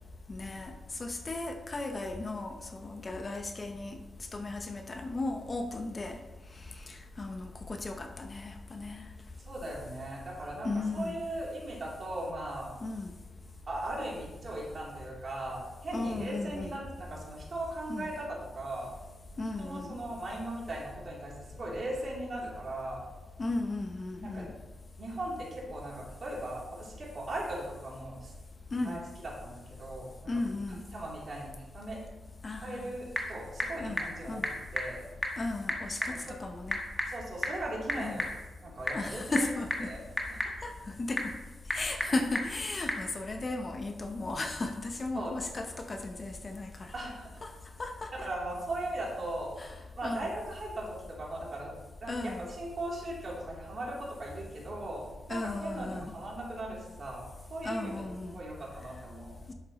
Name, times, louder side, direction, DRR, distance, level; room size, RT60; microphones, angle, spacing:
voice 1, 0.3-0.7 1.0-4.0 4.3-6.2 6.9-9.1 10.6-11.2 12.8-13.1 15.9-16.8 17.9-18.1 19.4-19.9 23.4-24.5 28.7-29.0 30.3-30.8 32.4-32.9 33.8-34.0 34.3-34.5 35.4-36.8 38.0-38.2 38.9-39.9 40.6-40.7 41.0-41.2 41.7-46.9 47.4-47.5 47.8-48.3 49.6-49.8 50.0-50.3 52.1-52.4 55.3-56.1 57.6-58.4 59.5-59.6, left 2 dB, 35° left, 5 dB, 0.8 m, -35 dB
voice 2, 9.4-12.7 13.7-18.9 19.6-23.0 24.2-24.5 25.0-28.3 28.8-30.1 30.9-32.0 32.6-34.4 34.7-35.0 36.0-36.3 37.1-38.3 38.6-39.5 39.8-40.0 40.3-40.4 41.9-42.0 45.1-45.3 46.9-47.4 48.2-51.7 52.0-55.0 55.3-57.9 58.3-59.4, right 1 dB, 45° right, -4 dB, 3.2 m, -38 dB
Typing / Telephone, 32.6-43.1, left 1 dB, 5° left, 1.5 m, -37 dB
11.0 x 7.8 x 3.1 m, 1.1 s
cardioid pair, 100°, 0 cm